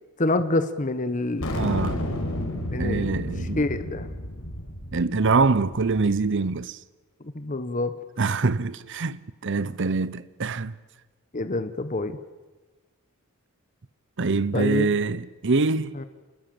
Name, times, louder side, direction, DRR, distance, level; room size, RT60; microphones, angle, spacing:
voice 1, 0.2-1.8 2.7-4.1 7.3-7.9 11.3-12.2 14.5-14.9 15.9-16.1, left 2 dB, 35° left, 1.0 m, -27 dB
sound 1, 1.4-6.1, left 1 dB, 80° left, 5.0 m, -31 dB
voice 2, 1.5-2.0 2.8-3.6 4.9-6.8 8.2-10.7 14.2-15.9, right 4 dB, 60° right, 0.8 m, -24 dB
28.5 x 20.5 x 7.7 m
head